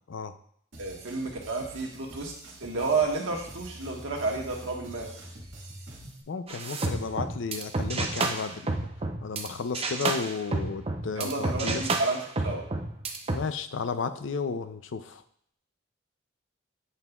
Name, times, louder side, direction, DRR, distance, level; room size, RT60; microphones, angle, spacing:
sound 1, 0.7-6.2, right 1 dB, 70° right, 1.8 m, -46 dB
voice 1, 0.8-2.3 2.6-5.2 11.2-12.6, right 3 dB, 85° right, 0 dB, 1.4 m, -31 dB
voice 2, 6.3-8.9 9.2-11.8 13.3-15.2, left 5 dB, 70° left, 11 dB, 0.5 m, -33 dB
sound 2, 6.5-9.5 9.7-13.4, right 3 dB, 30° right, 0.5 m, -30 dB
8.2 x 5.4 x 2.3 m, 0.65 s
head